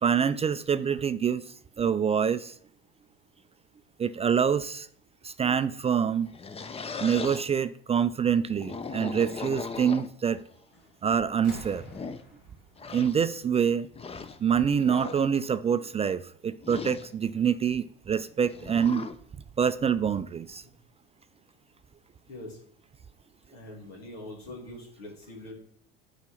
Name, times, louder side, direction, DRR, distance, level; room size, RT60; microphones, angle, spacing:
voice 1, 0.0-1.4 1.8-2.5 4.0-4.9 5.2-6.3 7.0-10.4 11.0-11.9 12.9-13.9 14.4-19.1 19.6-20.6, right 7 dB, 20° right, 0.3 m, -26 dB
sound 1, 6.2-7.5 8.4-10.4 11.2-11.3 11.8-12.2 12.8-13.2 13.9-14.4 14.8-15.3 16.6-17.1 18.5-19.2, left 4 dB, 20° left, 0.6 m, -38 dB
sound 2, 10.7-11.0 11.3-14.1 15.2-15.3, left 1 dB, 55° left, 3.0 m, -49 dB
voice 2, 22.3-22.6 23.5-25.5, left 1 dB, 80° left, 2.6 m, -43 dB
7.3 x 4.8 x 6.3 m
hypercardioid pair, 75°, 30 cm